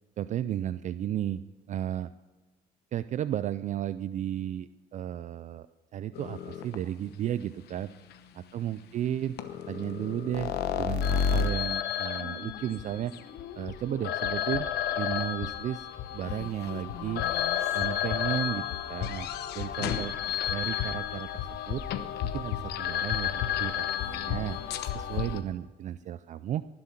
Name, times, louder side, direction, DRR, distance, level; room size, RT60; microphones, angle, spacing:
voice 1, 0.2-1.4 1.7-2.1 2.9-5.7 5.9-7.9 8.3-9.4 9.7-13.1 13.6-14.7 15.0-17.2 17.7-19.3 19.5-20.1 20.5-21.8 22.3-24.6 24.9-26.6, right 11 dB, 45° right, 14 dB, 0.4 m, -34 dB
sound 1, 6.1-6.8 8.1-8.2 9.4-25.4, left 9 dB, 75° left, 1.0 m, -31 dB
19.0 x 7.8 x 5.8 m, 1.2 s
cardioid pair, 110°, 17 cm